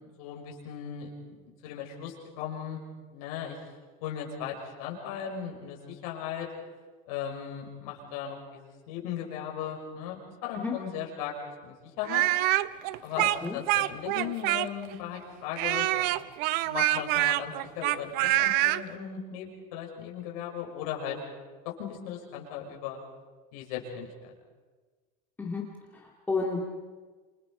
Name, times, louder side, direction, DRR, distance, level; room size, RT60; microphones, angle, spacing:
voice 1, 0.0-2.8 3.1-3.6 4.0-4.5 4.8-6.5 7.1-11.3 11.6-12.2 13.0-16.1 16.6-18.1 18.4-21.2 21.6-23.0 23.5-24.1, left 8 dB, 85° left, 0 dB, 6.2 m, -37 dB
Speech, 12.0-14.9 15.6-18.8, right 17 dB, 55° right, 0.7 m, -26 dB
voice 2, 25.9-26.6, left 4 dB, 10° left, -1 dB, 2.2 m, -31 dB
28.5 x 25.5 x 4.9 m, 1.4 s
cardioid pair, 155°, 18 cm